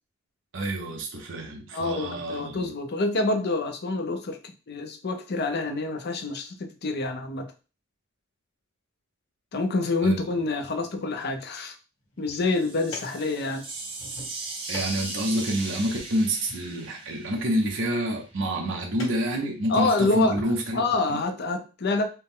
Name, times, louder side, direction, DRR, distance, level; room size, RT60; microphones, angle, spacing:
voice 1, 0.5-2.7 10.0-10.2 14.7-20.8 21.1-21.2, equal, 65° right, 0 dB, 0.8 m, -28 dB
voice 2, 1.7-7.5 9.5-11.7 12.2-13.6 19.7-20.3 20.7-22.1, left 3 dB, 55° left, 7 dB, 0.6 m, -27 dB
sound 1, 12.0-20.6, left 1 dB, 85° left, 2.0 m, -47 dB
sound 2, 12.3-18.2, right 3 dB, 25° right, 1.1 m, -38 dB
4.3 x 2.2 x 3.6 m, 0.33 s
head